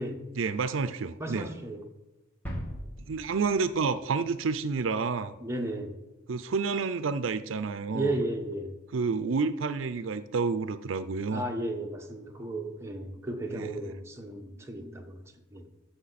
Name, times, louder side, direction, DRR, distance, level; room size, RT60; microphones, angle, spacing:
voice 1, 0.4-1.5 3.1-5.3 6.3-8.1 8.9-11.5 13.5-13.8, right 4 dB, 90° right, 13 dB, 0.5 m, -29 dB
voice 2, 1.2-1.8 5.4-5.9 7.9-8.8 11.3-15.2 15.5-15.6, right 1 dB, 15° right, 2 dB, 1.2 m, -34 dB
sound 1, 2.4-4.3 4.6-4.7, equal, 10° left, 2.2 m, -40 dB
14.0 x 5.5 x 4.1 m, 1.1 s
head